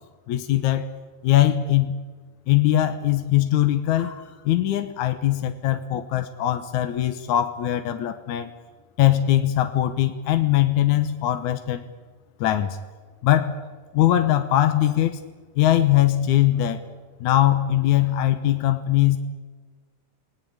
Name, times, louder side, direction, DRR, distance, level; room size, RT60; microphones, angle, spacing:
voice 1, 0.3-0.9 1.2-2.0 2.5-8.5 9.0-11.8 12.4-12.8 13.2-13.5 13.9-15.2 15.6-16.8 17.2-19.2, left 13 dB, 65° left, 7 dB, 2.2 m, -21 dB
29.5 x 19.0 x 8.8 m, 1.4 s
omnidirectional pair, 4.0 m